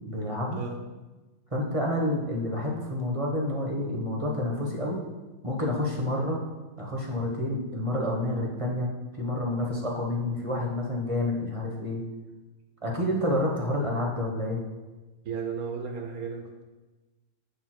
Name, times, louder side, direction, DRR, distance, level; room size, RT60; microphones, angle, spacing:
voice 1, 0.1-0.6 1.5-5.0 5.4-6.4 6.8-8.9 9.2-12.0 12.8-14.6, left 1 dB, 25° right, -1 dB, 1.1 m, -29 dB
voice 2, 15.2-16.6, right 6 dB, 85° right, 2 dB, 1.5 m, -35 dB
7.5 x 3.7 x 6.0 m, 1.2 s
omnidirectional pair, 1.5 m